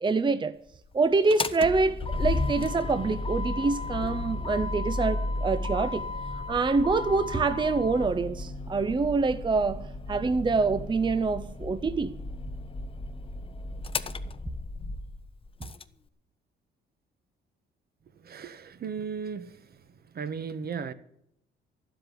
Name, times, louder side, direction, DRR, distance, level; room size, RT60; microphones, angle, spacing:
voice 1, 0.0-0.6 0.9-6.0 6.5-12.1, right 4 dB, 25° right, 0.7 m, -26 dB
Motor vehicle (road), 1.1-15.8, left 2 dB, 25° left, 0.8 m, -34 dB
voice 2, 18.2-19.8 20.1-20.9, right 6 dB, 50° right, 1.2 m, -36 dB
12.0 x 7.8 x 10.0 m
cardioid pair, 90°, 20 cm